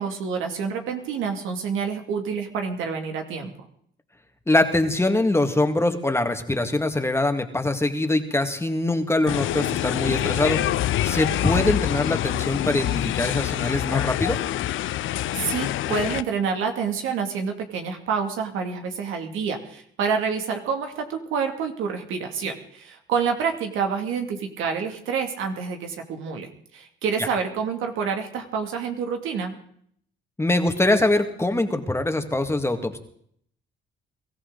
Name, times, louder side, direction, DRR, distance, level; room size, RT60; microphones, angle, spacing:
voice 1, 0.0-3.5 15.3-29.5, right 6 dB, 90° right, 4 dB, 2.6 m, -28 dB
voice 2, 4.5-10.6 11.0-14.4 27.2-27.3 30.4-33.0, left 2 dB, 15° left, 6 dB, 2.0 m, -23 dB
sound 1, 9.3-16.2, left 13 dB, 75° left, 0.6 m, -26 dB
23.0 x 14.5 x 4.0 m, 0.65 s
cardioid pair, 90°, 20 cm